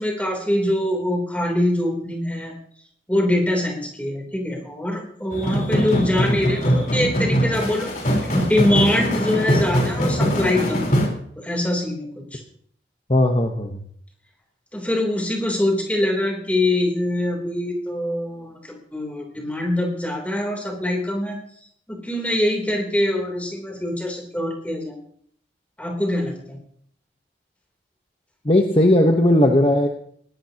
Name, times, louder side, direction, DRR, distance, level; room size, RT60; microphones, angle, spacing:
voice 1, 0.0-2.5 3.1-7.9 8.3-10.9 11.4-12.4 14.7-21.4 21.9-25.0 25.8-26.6, left 1 dB, 10° left, 1 dB, 3.4 m, -23 dB
sound 1, 5.3-11.1, equal, 45° left, 4.2 m, -22 dB
voice 2, 13.1-13.8 28.4-29.9, left 1 dB, 30° left, 3 dB, 1.1 m, -17 dB
20.5 x 18.0 x 2.9 m, 0.63 s
head